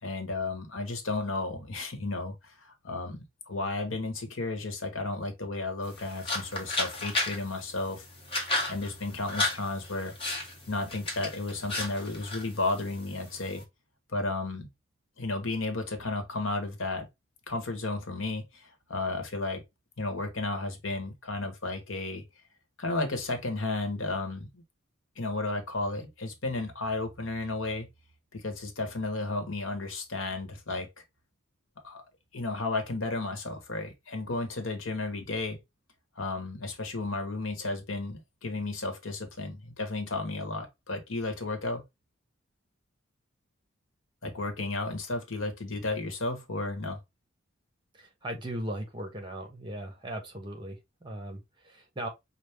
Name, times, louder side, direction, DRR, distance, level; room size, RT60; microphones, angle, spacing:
voice 1, 0.0-8.0 8.7-10.1 10.7-13.6 14.1-14.7 15.2-17.1 17.5-19.6 20.0-22.2 22.8-24.6 25.1-27.9 28.3-30.9 31.8-32.0 32.3-35.6 36.2-41.8 44.2-47.0, left 2 dB, 75° left, 1.3 m, -33 dB
sound 1, 5.8-13.6, left 2 dB, 25° left, 1.4 m, -35 dB
voice 2, 47.9-52.1, right 1 dB, 25° right, 1.2 m, -38 dB
5.7 x 2.3 x 3.4 m
head